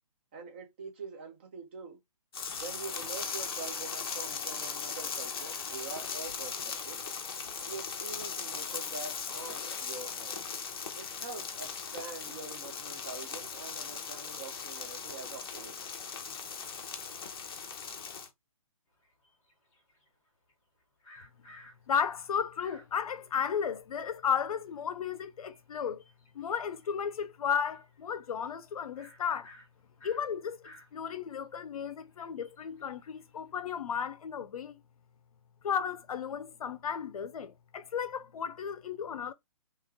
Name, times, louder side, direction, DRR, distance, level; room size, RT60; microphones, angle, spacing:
voice 1, 0.3-2.0 2.6-7.0 7.6-10.4 11.0-15.8, right 4 dB, 20° right, 0.5 m, -44 dB
sound 1, 2.3-18.3, left 6 dB, 40° left, 0.7 m, -38 dB
sound 2, 18.9-23.1 23.6-23.7 23.8-27.0 27.3-28.2 28.4-28.5 28.9-33.7, left 1 dB, 10° left, 0.9 m, -57 dB
voice 2, 21.9-26.0 26.3-29.5 30.0-34.7 35.6-39.3, left 7 dB, 80° left, 0.5 m, -34 dB
3.1 x 2.8 x 3.5 m
hypercardioid pair, 175°, 18 cm